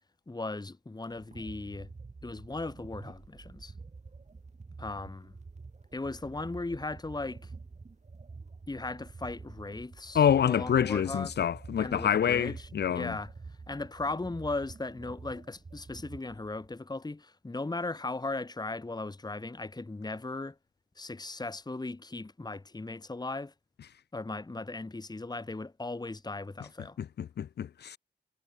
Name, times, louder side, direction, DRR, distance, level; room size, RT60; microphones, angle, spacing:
voice 1, 0.3-1.9 2.2-3.7 4.8-5.3 5.9-7.5 8.7-11.3 11.8-20.6 21.0-23.5 24.1-27.0, left 2 dB, 25° left, 1.9 m, -37 dB
sound 1, 1.1-16.7, right 4 dB, 40° right, 3.4 m, -48 dB
voice 2, 10.1-13.1 27.0-28.0, left 9 dB, 70° left, 0.6 m, -27 dB
cardioid pair, 70°, 18 cm